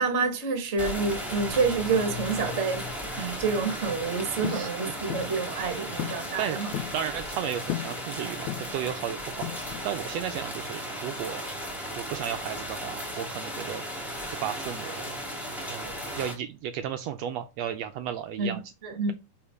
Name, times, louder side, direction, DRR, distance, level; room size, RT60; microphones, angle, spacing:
voice 1, 0.0-2.8 3.1-6.7 18.4-19.1, right 4 dB, 40° right, 1.0 m, -28 dB
sound 1, 0.8-16.3, equal, ahead, 1.3 m, -36 dB
sound 2, 4.4-4.7 5.1-5.4 6.0-6.2 6.5-7.0 7.7-8.0 8.5-8.8 9.4-9.9, left 13 dB, 75° left, 1.9 m, -34 dB
voice 2, 6.9-9.5 9.8-11.5 12.0-13.8 14.4-15.1 15.7-18.6, right 10 dB, 85° right, 1.4 m, -34 dB
7.4 x 4.3 x 4.6 m
omnidirectional pair, 3.6 m